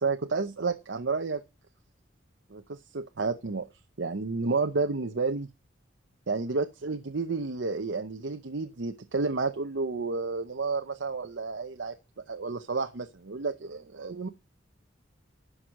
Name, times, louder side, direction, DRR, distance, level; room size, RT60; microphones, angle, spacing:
voice 1, 0.0-1.4 2.5-3.7 4.0-5.5 6.3-12.0 12.3-14.3, right 4 dB, 70° right, 6 dB, 0.8 m, -31 dB
11.5 x 6.3 x 6.2 m, 0.29 s
head